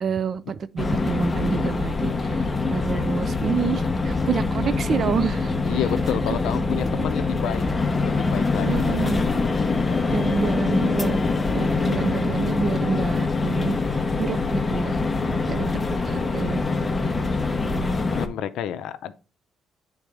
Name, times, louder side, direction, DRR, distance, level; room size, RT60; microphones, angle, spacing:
voice 1, 0.0-5.5 6.3-6.4 8.7-9.2 10.1-11.2 11.5-13.8 14.2-15.0 15.5-15.7 16.0-16.6, right 6 dB, 45° right, 0.4 m, -28 dB
sound 1, 0.8-18.3, left 3 dB, 20° left, 0.8 m, -24 dB
voice 2, 5.6-7.6 8.0-9.0 9.9-10.0 18.1-19.1, left 10 dB, 75° left, 0.6 m, -30 dB
9.1 x 3.9 x 3.4 m
cardioid pair, 110°, 0 cm